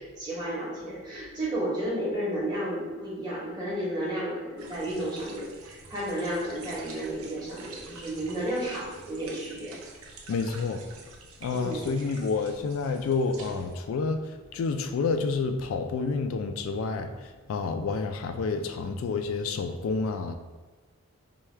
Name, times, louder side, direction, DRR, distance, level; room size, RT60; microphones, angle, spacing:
voice 1, 0.2-9.8 11.5-11.9, right 1 dB, 20° right, -7 dB, 1.0 m, -32 dB
sound 1, 4.6-13.7, right 3 dB, 85° right, 0.6 m, -48 dB
voice 2, 10.3-10.8 11.4-20.3, left 4 dB, 75° left, 6 dB, 0.3 m, -29 dB
4.6 x 2.2 x 3.2 m, 1.3 s
head